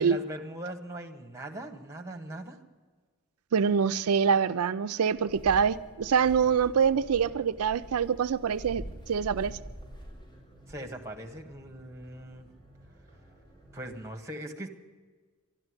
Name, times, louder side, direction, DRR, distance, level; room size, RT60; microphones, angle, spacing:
voice 1, 0.0-2.6 10.7-12.5 13.7-14.7, right 1 dB, 15° right, 5 dB, 1.6 m, -40 dB
voice 2, 3.5-9.6, right 6 dB, 75° right, 10 dB, 0.4 m, -25 dB
sound 1, 5.1-14.0, equal, 20° left, 4.8 m, -46 dB
12.5 x 12.0 x 9.7 m, 1.4 s
head